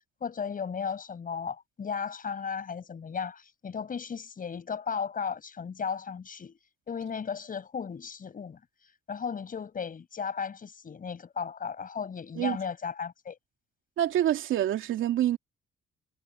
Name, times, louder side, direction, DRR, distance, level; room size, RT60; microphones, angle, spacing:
voice 1, 0.2-6.6 6.9-8.6 9.1-13.4, left 6 dB, 45° left, 6.6 m, -35 dB
voice 2, 14.0-15.4, right 12 dB, 80° right, 2.9 m, -26 dB
cardioid pair, 90°, 20 cm